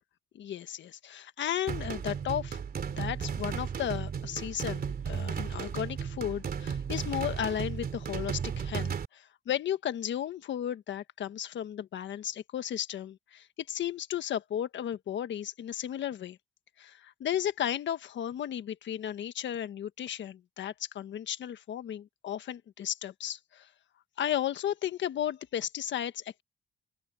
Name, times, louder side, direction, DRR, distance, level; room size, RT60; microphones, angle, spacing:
voice 1, 0.3-16.4 16.8-23.7 24.2-26.4, left 10 dB, 65° left, 1.4 m, -34 dB
sound 1, 1.7-9.0, right 7 dB, 50° right, 2.9 m, -34 dB
open air
cardioid pair, 90°, 20 cm